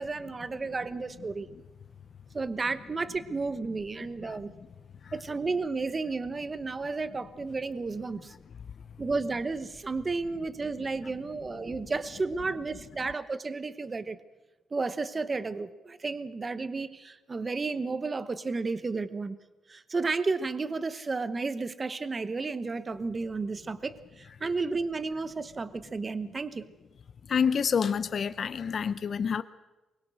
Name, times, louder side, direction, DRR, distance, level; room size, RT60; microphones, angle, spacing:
voice 1, 0.0-1.5 2.3-4.5 5.1-8.3 9.0-14.2 14.7-19.4 19.7-26.7, right 3 dB, 25° right, 13 dB, 1.0 m, -32 dB
voice 2, 27.3-29.4, left 6 dB, 45° left, 12 dB, 0.7 m, -28 dB
23.5 x 21.5 x 6.4 m, 1.1 s
cardioid pair, 130°, 0 cm